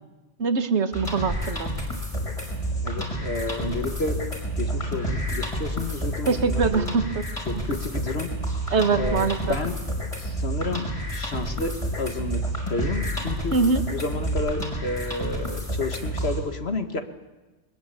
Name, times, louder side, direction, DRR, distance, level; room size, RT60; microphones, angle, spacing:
voice 1, 0.4-1.7 6.3-7.0 7.4-7.6 8.7-9.6 13.5-13.8, right 4 dB, 80° right, 9 dB, 1.7 m, -23 dB
sound 1, 0.9-16.4, equal, 30° left, 5.5 m, -29 dB
voice 2, 2.8-4.2 4.6-6.9 7.5-8.3 9.0-9.8 10.2-13.6 13.9-17.0, left 2 dB, 65° left, 7 dB, 2.1 m, -31 dB
22.5 x 20.5 x 8.5 m, 1.2 s
omnidirectional pair, 1.1 m